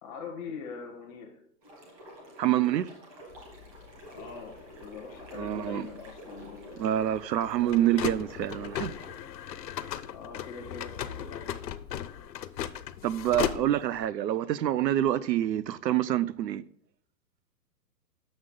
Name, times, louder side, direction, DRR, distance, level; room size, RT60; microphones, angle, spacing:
voice 1, 0.0-1.4 4.1-7.0 10.1-11.5, left 5 dB, 5° left, 0.7 m, -42 dB
sound 1, 1.6-9.1, right 1 dB, 20° right, 1.6 m, -48 dB
voice 2, 2.4-2.9 5.3-5.9 6.8-8.9 13.0-16.6, right 12 dB, 90° right, 0.6 m, -27 dB
sound 2, 3.3-14.1, left 10 dB, 85° left, 0.7 m, -38 dB
8.0 x 6.5 x 3.7 m
hypercardioid pair, 170°, 49 cm